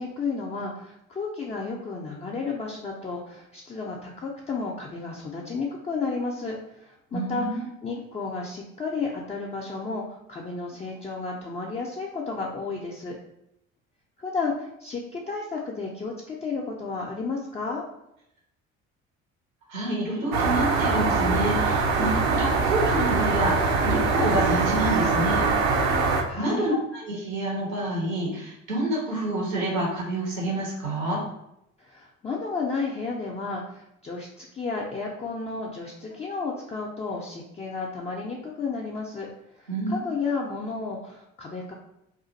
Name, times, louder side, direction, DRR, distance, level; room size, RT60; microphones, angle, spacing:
voice 1, 0.0-10.0 10.3-13.2 14.2-17.8 26.3-26.7 31.8-39.3 39.6-41.7, left 4 dB, 15° left, -2 dB, 0.4 m, -32 dB
voice 2, 7.1-7.6 19.7-25.5 25.8-26.0 26.4-31.2 39.7-40.0, right 1 dB, 80° right, -2 dB, 1.0 m, -28 dB
sound 1, 20.3-26.2, right 4 dB, 65° right, 0.6 m, -23 dB
2.4 x 2.4 x 3.9 m, 0.82 s
figure-of-eight pair, 50°, 40 cm